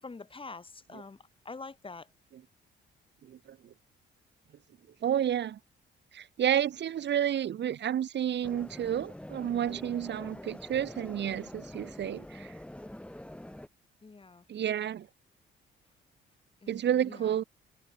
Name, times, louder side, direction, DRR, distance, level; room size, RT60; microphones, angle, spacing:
voice 1, 0.0-1.2 1.4-2.1 14.0-14.4 16.6-17.4, left 4 dB, 25° left, 6.3 m, -45 dB
voice 2, 5.0-5.6 6.1-12.5 14.5-15.1 16.7-17.4, right 10 dB, 60° right, 2.0 m, -30 dB
sound 1, 8.4-13.7, left 1 dB, 5° left, 6.4 m, -45 dB
cardioid pair, 90°, 20 cm